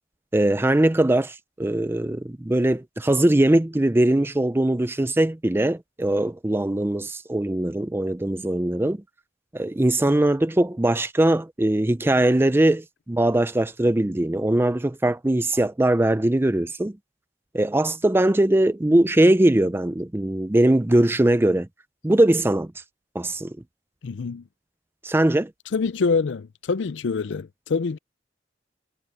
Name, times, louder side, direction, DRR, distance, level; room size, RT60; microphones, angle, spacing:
voice 1, 0.3-9.0 9.5-16.9 17.5-21.7 22.0-22.7 23.1-23.6 25.0-25.5, right 1 dB, 15° right, 0.4 m, -21 dB
voice 2, 24.0-24.4 25.7-28.0, left 4 dB, 90° left, 0.5 m, -25 dB
head